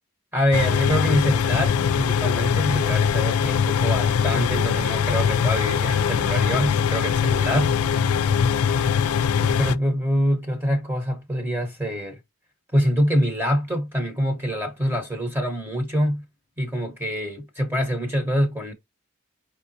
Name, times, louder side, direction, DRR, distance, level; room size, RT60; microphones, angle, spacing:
voice 1, 0.3-7.7 9.4-12.2 12.7-16.2 16.6-18.7, equal, 10° right, 1.0 m, -25 dB
sound 1, 0.5-9.7, left 7 dB, 75° left, 0.4 m, -22 dB
4.9 x 3.3 x 2.7 m
head